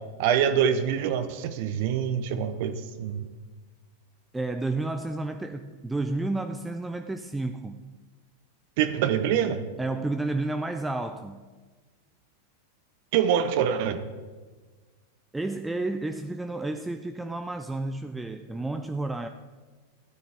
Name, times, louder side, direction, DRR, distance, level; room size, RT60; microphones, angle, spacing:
voice 1, 0.2-3.2 8.8-9.6 13.1-14.0, right 8 dB, 55° right, 10 dB, 0.7 m, -25 dB
voice 2, 4.3-7.8 9.8-11.5 15.3-19.3, right 2 dB, 10° right, 7 dB, 0.5 m, -31 dB
13.5 x 9.4 x 3.5 m, 1.4 s
hypercardioid pair, 95°, 0 cm